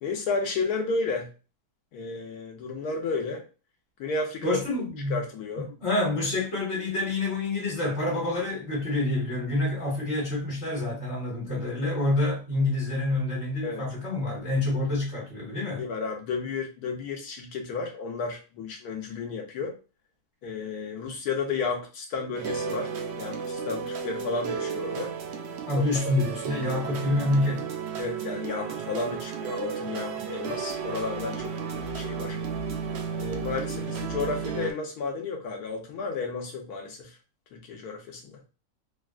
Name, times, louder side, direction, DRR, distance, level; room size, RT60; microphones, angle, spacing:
voice 1, 0.0-1.3 1.9-3.4 4.0-4.6 5.1-5.7 13.6-13.8 15.8-19.7 20.4-25.2 25.8-25.9 27.9-32.4 33.1-37.1 37.5-38.4, left 4 dB, 80° left, 1.3 m, -32 dB
voice 2, 4.4-5.2 5.8-15.8 25.7-27.6, left 2 dB, 45° left, 1.5 m, -27 dB
sound 1, 22.3-34.7, right 6 dB, 75° right, 0.6 m, -33 dB
3.4 x 2.3 x 2.3 m
omnidirectional pair, 1.7 m